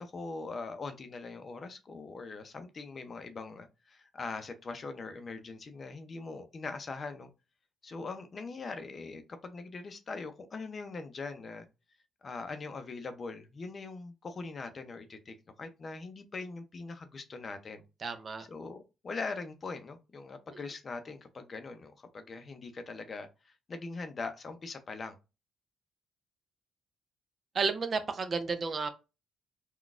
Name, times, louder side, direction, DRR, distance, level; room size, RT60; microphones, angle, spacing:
voice 1, 0.0-7.3 7.8-11.7 12.2-17.8 18.4-25.2, left 3 dB, 40° left, 0.5 m, -41 dB
voice 2, 18.0-18.4 20.5-20.6 27.5-28.9, right 4 dB, 45° right, 0.5 m, -32 dB
3.8 x 2.3 x 2.4 m
cardioid pair, 90°, 0 cm